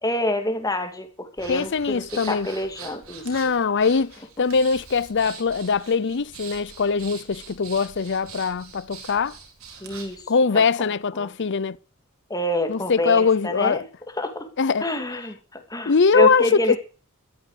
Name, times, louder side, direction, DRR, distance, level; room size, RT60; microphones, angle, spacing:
voice 1, 0.0-2.0 2.3-3.2 9.8-10.2 11.1-11.3 12.3-13.8 14.2-14.5 14.8-16.8, left 1 dB, 15° left, 2.5 m, -27 dB
Breathing, 1.4-10.2, right 5 dB, 70° right, 4.6 m, -43 dB
voice 2, 1.5-2.5 3.2-9.4 10.3-11.8 12.7-13.8 14.6-14.9 15.8-16.8, left 5 dB, 55° left, 0.6 m, -22 dB
14.0 x 13.0 x 5.0 m
head